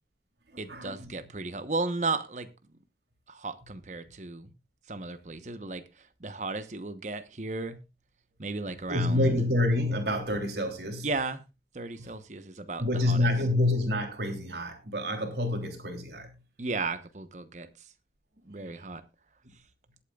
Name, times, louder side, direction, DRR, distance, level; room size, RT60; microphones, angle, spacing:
voice 1, 0.6-2.5 3.3-4.5 4.9-7.8 8.4-9.4 11.0-11.4 11.7-13.3 16.6-17.7 18.4-19.0, right 3 dB, 40° right, 1.0 m, -35 dB
voice 2, 8.9-11.1 12.0-12.1 12.8-16.3 18.6-18.7, left 1 dB, 70° right, 3.2 m, -27 dB
21.0 x 8.7 x 2.4 m
head